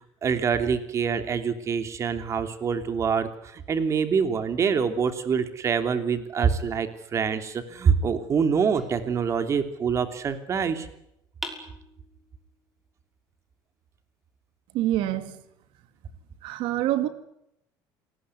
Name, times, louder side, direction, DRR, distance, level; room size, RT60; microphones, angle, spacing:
voice 1, 0.2-10.9, right 6 dB, 35° right, 9 dB, 3.0 m, -25 dB
sound 1, 8.7-9.9 11.4-12.4, equal, ahead, 5.8 m, -42 dB
voice 2, 14.7-15.4 16.4-17.1, right 14 dB, 70° right, 11 dB, 2.8 m, -26 dB
27.5 x 19.5 x 9.8 m, 0.80 s
cardioid pair, 135°, 9 cm